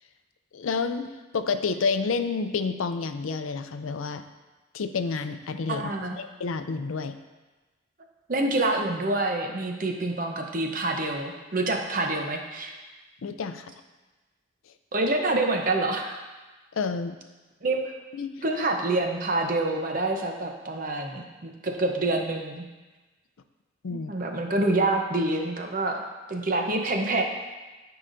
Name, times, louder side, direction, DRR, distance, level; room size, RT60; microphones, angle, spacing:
voice 1, 0.5-4.2 4.7-7.2 13.2-13.7 16.7-17.2 18.1-18.3 23.8-24.1, left 4 dB, 85° left, 9 dB, 0.5 m, -29 dB
voice 2, 5.7-6.2 8.3-12.8 14.9-16.2 17.6-17.9 18.4-22.7 23.9-27.2, right 2 dB, 40° right, 3 dB, 0.8 m, -27 dB
13.5 x 4.8 x 2.6 m, 1.2 s
head